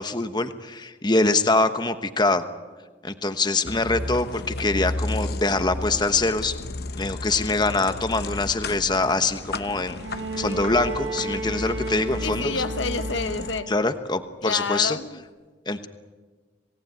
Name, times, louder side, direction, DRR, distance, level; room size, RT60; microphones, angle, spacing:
voice 1, 0.0-2.4 3.0-6.5 7.0-10.0 10.4-12.5 13.7-15.0 15.7-15.9, left 3 dB, 25° left, 1.1 m, -24 dB
sound 1, 3.6-13.6, left 2 dB, 55° left, 0.8 m, -33 dB
Bowed string instrument, 10.0-14.0 15.3-15.4, right 3 dB, 80° right, 1.4 m, -33 dB
voice 2, 12.2-13.7 14.4-15.2, left 4 dB, 85° left, 1.1 m, -29 dB
27.5 x 18.0 x 9.1 m
head